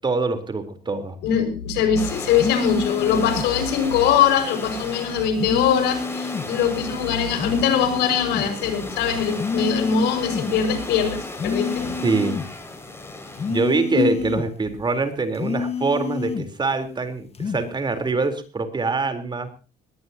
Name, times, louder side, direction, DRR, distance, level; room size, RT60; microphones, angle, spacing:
voice 1, 0.0-1.2 12.0-12.4 13.5-19.5, right 3 dB, 25° right, 8 dB, 3.9 m, -24 dB
voice 2, 1.2-12.0 13.9-14.1, left 7 dB, 85° left, 8 dB, 5.8 m, -22 dB
sound 1, 2.0-14.0, left 2 dB, 15° left, 5.9 m, -35 dB
sound 2, 2.4-3.5 5.4-6.5 7.4-8.5 9.4-10.5 11.3-12.5 13.4-14.5 15.3-16.5 17.3-17.7, left 5 dB, 35° left, 1.6 m, -28 dB
20.5 x 19.5 x 2.9 m, 0.34 s
cardioid pair, 110°, 17 cm